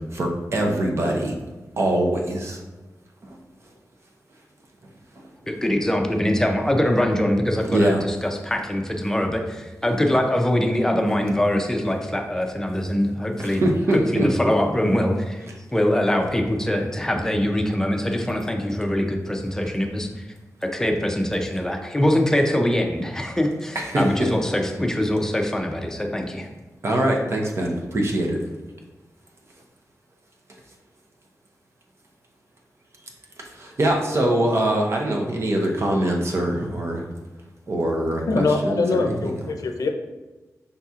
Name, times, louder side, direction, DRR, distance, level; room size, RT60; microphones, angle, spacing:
voice 1, 0.1-1.3 1.8-2.6 7.7-8.0 13.4-14.3 23.7-24.3 26.8-28.4 33.6-37.0 37.7-39.3, right 1 dB, 45° right, 1 dB, 0.8 m, -23 dB
voice 2, 5.5-13.6 13.9-20.1 20.6-26.5, left 1 dB, 10° left, 3 dB, 0.5 m, -23 dB
voice 3, 38.3-39.9, left 3 dB, 80° left, 5 dB, 0.5 m, -23 dB
5.4 x 4.1 x 2.4 m, 1.2 s
wide cardioid pair, 135°, 6 cm